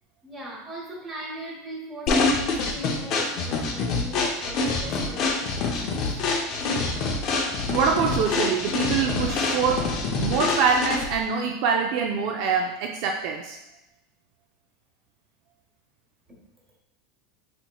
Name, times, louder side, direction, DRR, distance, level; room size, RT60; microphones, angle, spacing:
voice 1, 0.2-6.1, right 1 dB, 15° right, -4 dB, 1.1 m, -39 dB
sound 1, 2.1-11.2, left 3 dB, 45° left, 0.5 m, -26 dB
voice 2, 7.7-13.6, right 5 dB, 60° right, 1 dB, 0.3 m, -25 dB
4.2 x 2.9 x 2.3 m, 0.90 s
supercardioid pair, 135°, 0 cm